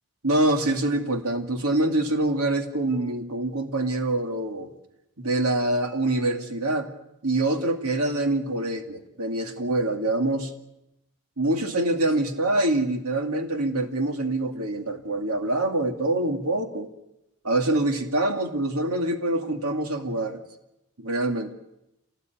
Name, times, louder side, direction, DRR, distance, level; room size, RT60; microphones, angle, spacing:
voice 1, 0.2-4.7 5.2-6.9 7.2-10.5 11.4-16.9 17.4-20.4 21.0-21.5, right 2 dB, 85° right, 5 dB, 2.5 m, -25 dB
27.0 x 18.5 x 9.4 m, 0.89 s
head